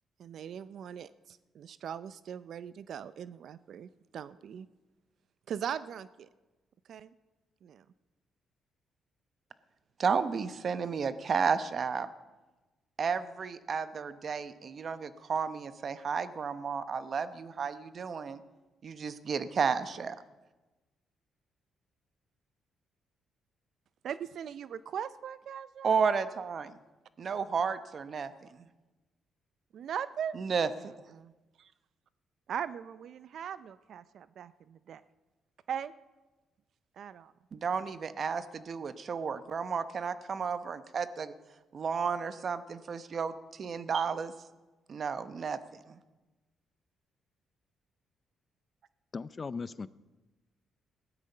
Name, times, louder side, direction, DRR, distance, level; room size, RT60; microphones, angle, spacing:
voice 1, 0.2-4.7 5.5-6.3 6.9-7.1 7.6-7.8 24.0-26.0 29.7-30.4 30.8-31.3 31.6-31.7 32.5-35.0 35.7-35.9 37.0-37.3, right 8 dB, 65° right, 16 dB, 0.5 m, -40 dB
voice 2, 10.0-12.1 13.0-18.4 18.8-20.2 25.8-26.7 27.2-28.3 30.3-30.9 37.5-41.3 41.7-44.3 44.9-46.0, right 6 dB, 50° right, 13 dB, 0.9 m, -32 dB
voice 3, 49.1-49.9, left 4 dB, 35° left, 17 dB, 0.4 m, -37 dB
15.5 x 12.5 x 5.5 m, 1.2 s
cardioid pair, 90°, 0 cm